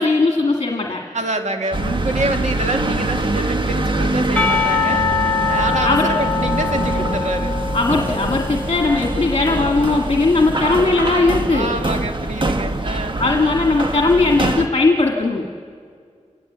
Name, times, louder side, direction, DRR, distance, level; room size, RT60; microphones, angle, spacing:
voice 1, 0.0-1.0 5.8-6.1 7.7-11.7 13.2-15.4, left 3 dB, 50° left, 0 dB, 1.9 m, -18 dB
voice 2, 1.1-5.1 5.4-7.5 11.5-13.2, right 2 dB, 70° right, 4 dB, 2.0 m, -26 dB
sound 1, 1.7-14.7, right 2 dB, 40° right, 1.4 m, -24 dB
Percussion, 4.4-9.2, left 5 dB, 10° left, 1.9 m, -23 dB
28.5 x 18.5 x 8.1 m, 2.1 s
wide cardioid pair, 70°, 12 cm